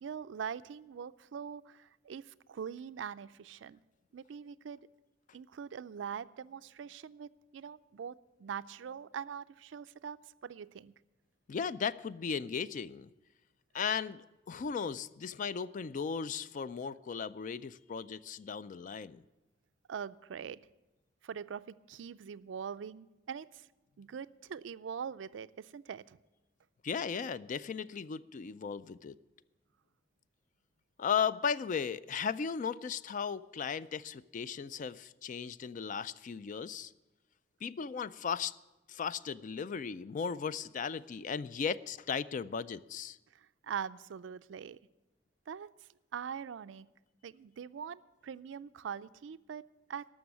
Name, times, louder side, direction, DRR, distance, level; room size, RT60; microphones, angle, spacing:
voice 1, 0.0-3.8 4.1-4.9 5.3-10.9 19.9-20.6 21.2-23.7 24.0-26.2 43.3-44.8 45.5-45.7 46.1-46.9 47.2-50.1, right 7 dB, 75° right, 16 dB, 0.4 m, -43 dB
voice 2, 11.5-13.1 13.7-19.2 26.8-29.2 31.0-36.9 37.6-38.5 38.9-43.2, left 6 dB, 45° left, 17 dB, 0.3 m, -36 dB
13.0 x 6.3 x 9.5 m, 1.0 s
head